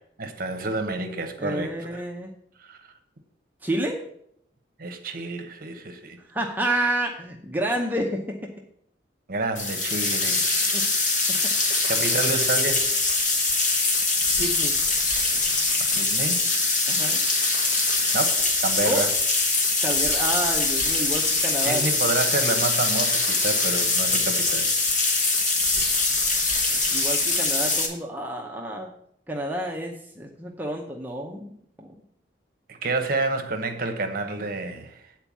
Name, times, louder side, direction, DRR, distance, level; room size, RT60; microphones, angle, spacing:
voice 1, 0.2-2.0 2.6-2.8 4.8-6.2 9.3-10.5 11.9-12.9 14.1-14.4 15.8-16.4 18.1-19.1 21.6-24.7 32.7-35.1, right 3 dB, 50° right, 6 dB, 0.9 m, -29 dB
voice 2, 1.4-2.3 3.6-4.0 6.3-8.5 10.7-10.8 11.4-11.5 14.4-14.8 16.9-17.2 18.8-19.1 19.8-21.8 26.9-28.9 29.3-31.5 31.8-31.9, right 1 dB, 10° right, 0 dB, 0.7 m, -29 dB
sound 1, 9.6-27.9, left 3 dB, 40° left, 1.5 m, -23 dB
8.7 x 4.5 x 7.2 m, 0.70 s
head